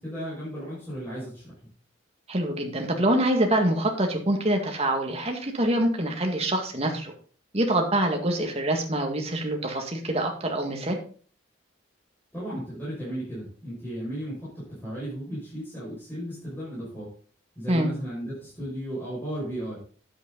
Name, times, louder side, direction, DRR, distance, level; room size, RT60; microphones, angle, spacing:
voice 1, 0.0-1.5 12.3-17.1 17.6-19.8, equal, 10° left, -9 dB, 5.7 m, -35 dB
voice 2, 2.3-7.1 7.5-11.0 17.7-17.9, right 1 dB, 30° right, 3 dB, 1.9 m, -25 dB
9.7 x 8.3 x 4.0 m, 0.43 s
head